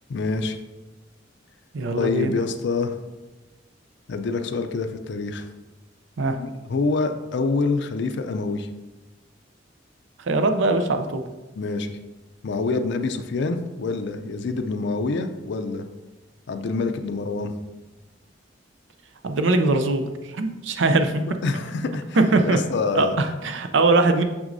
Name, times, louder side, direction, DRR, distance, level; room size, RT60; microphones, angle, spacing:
voice 1, 0.1-0.6 1.9-3.0 4.1-5.5 6.4-8.7 11.6-12.0 12.4-15.9 16.5-17.5 21.4-22.2 22.4-23.2, left 3 dB, 65° left, 8 dB, 0.4 m, -26 dB
voice 2, 1.7-2.4 6.2-6.4 10.2-11.2 19.2-21.2 22.2-22.6 22.9-24.2, right 2 dB, 75° right, 7 dB, 0.5 m, -21 dB
6.2 x 6.1 x 2.6 m, 1.1 s
head